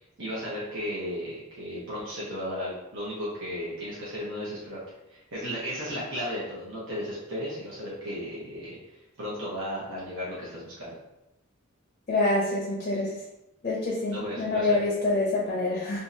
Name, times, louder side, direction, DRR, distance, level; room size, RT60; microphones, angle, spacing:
voice 1, 0.2-4.8 5.1-10.9 14.1-14.8, equal, 65° right, -8 dB, 1.1 m, -35 dB
voice 2, 12.1-13.2 13.6-16.0, left 2 dB, 40° left, -2 dB, 0.5 m, -26 dB
3.6 x 2.7 x 2.6 m, 0.90 s
head